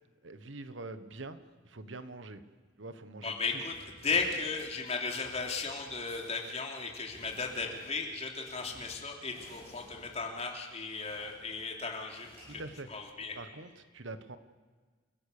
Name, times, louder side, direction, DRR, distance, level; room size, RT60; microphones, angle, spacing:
voice 1, 0.2-2.4 2.8-3.6 12.5-12.9 13.3-14.4, right 2 dB, 70° right, 11 dB, 1.3 m, -44 dB
voice 2, 3.2-3.7 4.0-12.6 12.9-13.3, left 4 dB, 30° left, 1 dB, 3.2 m, -35 dB
sound 1, 3.7-13.5, equal, 30° right, 7.2 m, -57 dB
29.0 x 17.0 x 6.8 m, 1.4 s
head